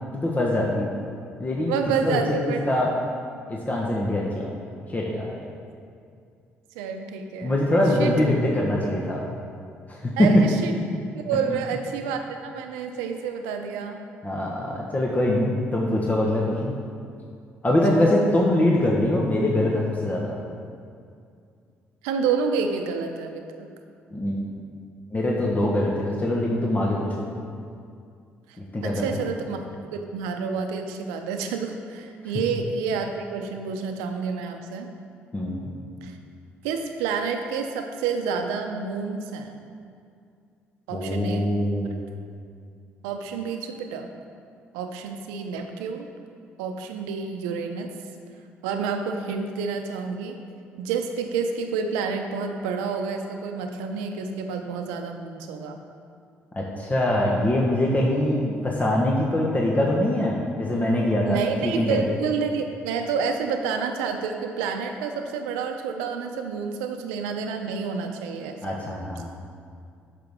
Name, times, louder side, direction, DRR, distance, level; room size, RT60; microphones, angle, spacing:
voice 1, 0.1-0.9 1.4-1.7 2.0-2.2 2.7-3.0 3.5-4.5 4.9-5.4 7.4-9.2 9.9-10.4 11.5-11.6 14.2-16.7 17.6-20.4 24.1-24.5 25.1-27.2 28.6-29.3 35.3-35.7 40.9-41.9 56.5-62.0 68.6-69.3, left 1 dB, 30° left, -2 dB, 1.3 m, -23 dB
voice 2, 1.7-2.6 6.7-7.6 8.0-8.1 8.8-8.9 10.2-10.7 11.2-14.0 17.9-18.2 22.0-23.7 28.8-34.9 36.0-36.1 36.6-39.6 40.9-41.5 43.0-44.1 44.7-46.1 46.6-47.9 48.6-50.4 50.8-55.8 61.3-68.8, right 5 dB, 90° right, 5 dB, 0.6 m, -29 dB
10.0 x 6.7 x 3.7 m, 2.3 s
supercardioid pair, 60°, 5 cm